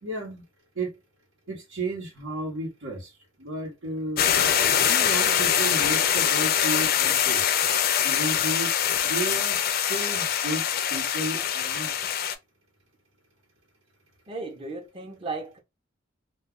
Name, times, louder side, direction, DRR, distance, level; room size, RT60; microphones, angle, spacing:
voice 1, 0.0-0.4 0.8-1.0 1.5-3.1 3.4-4.2 4.8-7.4 8.0-8.7 9.0-10.6 10.9-11.9, right 2 dB, 90° right, 1.0 m, -33 dB
sound 1, 4.2-12.3, left 9 dB, 50° left, 0.4 m, -23 dB
voice 2, 14.3-15.6, right 3 dB, 25° right, 0.6 m, -35 dB
2.3 x 2.2 x 3.5 m
head